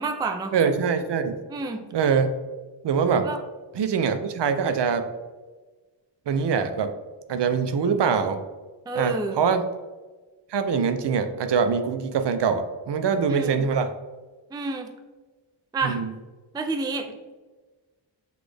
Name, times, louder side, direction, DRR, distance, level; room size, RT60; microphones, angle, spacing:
voice 1, 0.0-0.5 1.5-1.8 3.2-3.4 8.9-9.4 13.3-13.6 14.5-14.9 15.7-16.0 16.5-17.1, right 3 dB, 10° right, 5 dB, 0.3 m, -29 dB
voice 2, 0.5-1.3 1.9-2.3 2.8-3.3 3.7-5.1 6.3-6.9 7.3-8.4 8.9-9.6 10.5-13.9 15.8-16.1, right 6 dB, 60° right, 8 dB, 0.6 m, -23 dB
6.1 x 2.5 x 3.3 m, 1.3 s
cardioid pair, 75°, 47 cm